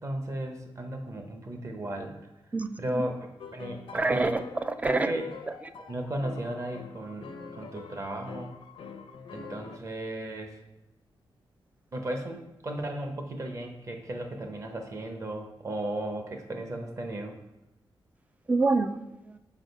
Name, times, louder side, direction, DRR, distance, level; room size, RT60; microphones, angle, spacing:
voice 1, 0.0-2.1 2.8-3.1 3.5-4.4 4.8-5.3 5.9-8.5 9.3-10.5 11.9-17.4, right 1 dB, 35° right, 4 dB, 0.9 m, -35 dB
voice 2, 2.5-3.0 3.9-5.1 18.5-19.4, right 3 dB, 15° right, 11 dB, 0.3 m, -27 dB
sound 1, 3.4-9.8, left 5 dB, 90° left, 0.6 m, -45 dB
6.3 x 4.5 x 5.3 m, 0.95 s
wide cardioid pair, 165°, 9 cm